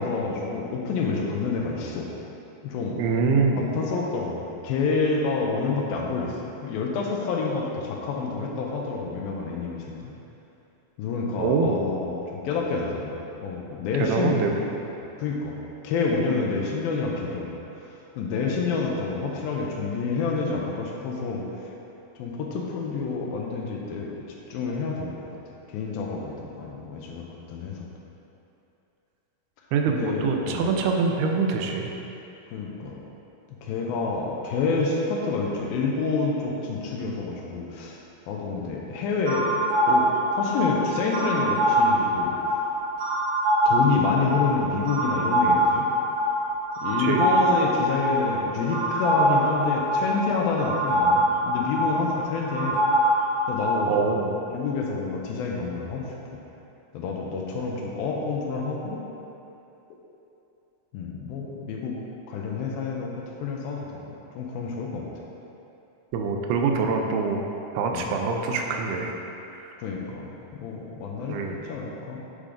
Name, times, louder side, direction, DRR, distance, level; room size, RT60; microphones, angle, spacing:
voice 1, 0.0-2.1 2.6-3.0 3.6-6.4 6.6-10.1 11.0-13.1 13.4-14.7 15.2-15.6 15.8-17.5 18.2-21.5 22.2-24.2 24.5-25.3 25.7-27.9 30.0-30.7 32.5-33.0 33.6-38.0 38.3-39.6 39.9-42.4 43.7-45.9 46.8-52.8 53.5-54.0 54.5-56.1 56.9-59.0 60.9-62.0 62.3-63.1 63.4-64.0 64.4-65.1 67.9-68.1 69.8-72.2, left 4 dB, 80° left, -1 dB, 2.4 m, -28 dB
voice 2, 3.0-3.7 11.4-11.8 14.0-14.5 29.7-31.9 47.0-47.2 53.9-54.4 66.1-67.4 67.8-69.1 71.3-71.6, right 4 dB, 90° right, 2 dB, 2.6 m, -24 dB
sound 1, 39.3-54.0, right 1 dB, 60° right, 2.3 m, -24 dB
8.3 x 5.0 x 3.7 m, 2.9 s
omnidirectional pair, 4.4 m